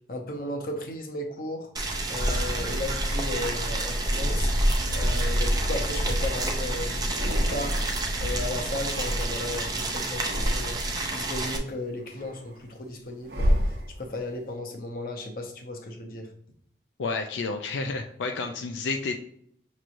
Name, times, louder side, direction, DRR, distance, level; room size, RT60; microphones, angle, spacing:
voice 1, 0.1-1.7 2.1-4.5 4.9-7.8 8.2-13.6 14.0-16.3, left 1 dB, 50° left, 3 dB, 0.7 m, -35 dB
Boiling, 1.8-11.6, right 2 dB, 20° right, 0.5 m, -31 dB
sound 1, 2.2-9.7, equal, 40° right, 0.9 m, -29 dB
sound 2, 2.6-3.3 3.9-4.9 5.4-6.6 6.9-8.0 8.3-9.7 10.1-11.1 11.6-14.3, equal, 60° right, 0.9 m, -32 dB
voice 2, 17.0-19.2, left 4 dB, 85° left, 4 dB, 0.4 m, -30 dB
6.0 x 3.0 x 2.6 m, 0.68 s
head